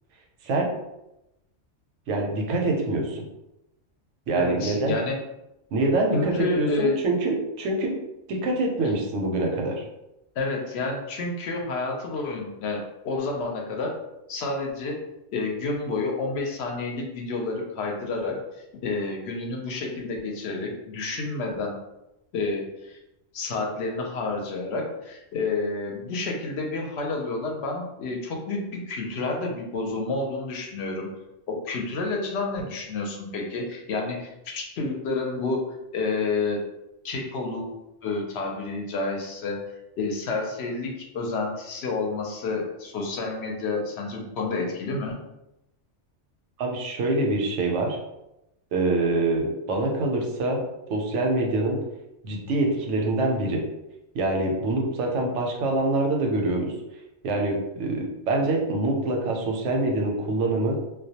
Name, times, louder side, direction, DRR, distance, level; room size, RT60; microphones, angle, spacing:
voice 1, 2.1-3.2 4.3-5.0 5.7-7.9 8.3-9.8 46.6-48.0 48.7-50.6 50.9-51.8 52.2-53.6 54.1-56.7 57.2-60.8, right 2 dB, 85° right, 1 dB, 0.9 m, -25 dB
voice 2, 4.3-5.2 6.1-7.0 8.8-8.9 10.4-13.9 14.3-15.0 15.3-18.4 18.8-21.8 22.3-23.0 23.3-31.1 31.5-35.6 35.9-36.6 37.0-37.7 38.0-39.6 40.0-45.2, left 3 dB, 70° left, 0 dB, 0.8 m, -29 dB
2.2 x 2.1 x 2.7 m, 0.90 s
omnidirectional pair, 1.2 m